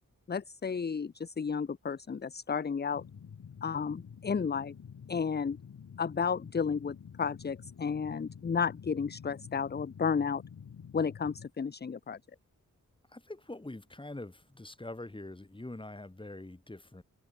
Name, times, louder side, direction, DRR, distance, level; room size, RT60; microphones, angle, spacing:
voice 1, 0.3-3.0 3.6-4.7 5.1-5.6 6.0-10.4 10.9-12.2, left 6 dB, 30° left, 0.6 m, -32 dB
sound 1, 2.9-11.5, left 7 dB, 70° left, 1.6 m, -49 dB
voice 2, 13.1-17.0, left 2 dB, 15° left, 2.2 m, -44 dB
open air
wide cardioid pair, 95°, 32 cm